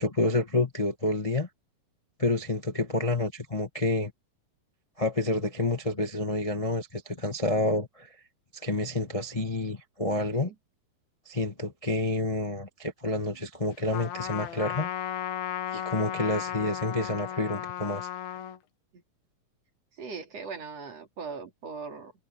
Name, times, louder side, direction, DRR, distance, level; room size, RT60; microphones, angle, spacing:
voice 1, 0.0-1.5 2.2-4.1 5.0-8.1 8.6-10.5 11.2-14.9 15.7-18.1, left 2 dB, 35° left, 0.5 m, -29 dB
Trumpet, 13.9-18.6, left 10 dB, 75° left, 3.4 m, -35 dB
voice 2, 20.0-22.1, right 5 dB, 45° right, 4.1 m, -40 dB
omnidirectional pair, 4.3 m